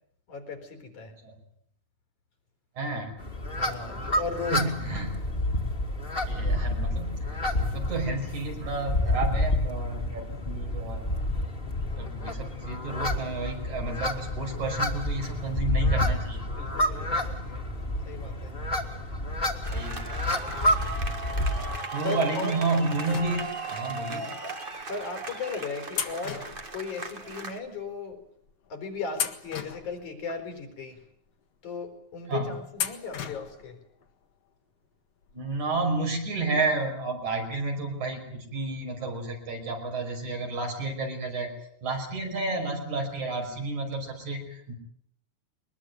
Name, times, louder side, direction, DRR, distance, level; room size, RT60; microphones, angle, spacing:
voice 1, 0.3-1.2 3.5-4.7 16.6-17.7 18.1-18.6 22.0-22.6 24.9-26.5 26.7-28.2 28.7-31.0 31.6-33.8, left 4 dB, 80° left, 6 dB, 5.3 m, -36 dB
voice 2, 2.8-3.2 4.5-5.2 6.3-11.0 12.0-16.4 19.7-20.0 21.9-24.3 32.3-32.5 35.3-41.5 41.8-44.7, right 3 dB, 75° right, 2 dB, 6.9 m, -31 dB
sound 1, 3.2-21.8, left 1 dB, 20° left, 2.1 m, -29 dB
sound 2, 19.6-27.6, right 3 dB, 25° right, 1.3 m, -37 dB
sound 3, 23.0-23.9 24.7-24.8 25.9-27.4 27.7-27.8 28.5-28.7 29.1-30.4 31.0-31.1 32.7-33.7 34.0-34.1 35.3-35.4 35.7-35.8, left 8 dB, 60° left, 2.6 m, -36 dB
23.0 x 20.5 x 9.1 m, 0.69 s
omnidirectional pair, 3.4 m